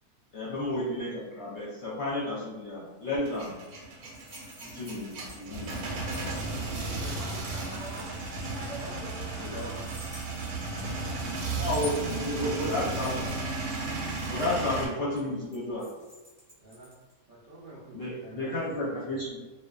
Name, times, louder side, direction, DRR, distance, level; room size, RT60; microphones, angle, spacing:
voice 1, 0.3-3.6 4.6-6.0 9.4-9.7 11.4-13.3 14.3-15.9 17.9-19.4, left 1 dB, 60° left, -8 dB, 0.8 m, -32 dB
sound 1, 3.1-17.1, left 1 dB, 15° right, 0.6 m, -51 dB
Male speech man speaking / Vehicle / Engine starting, 3.3-14.9, right 3 dB, 90° right, 1.1 m, -34 dB
voice 2, 6.3-7.6 16.6-16.9 17.3-19.2, right 2 dB, 65° right, -7 dB, 0.5 m, -48 dB
voice 3, 7.1-8.1 8.5-9.9 11.2-11.4, equal, 25° left, -12 dB, 0.7 m, -44 dB
2.4 x 2.3 x 2.3 m, 1.2 s
omnidirectional pair, 1.5 m